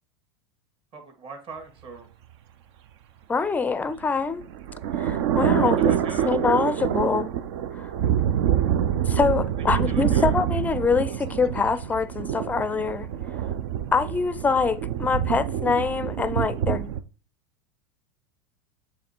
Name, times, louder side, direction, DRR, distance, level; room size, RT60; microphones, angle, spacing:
voice 1, 0.9-2.1 5.6-6.4 9.9-10.3, right 4 dB, 40° right, 1.9 m, -40 dB
voice 2, 3.3-4.4 5.0-5.9 6.2-7.3 7.7-7.9 9.1-13.1 13.9-17.0, left 4 dB, 10° left, 0.4 m, -24 dB
sound 1, 3.9-17.0, right 10 dB, 65° right, 0.6 m, -26 dB
7.1 x 3.2 x 4.3 m
hypercardioid pair, 105°, 15 cm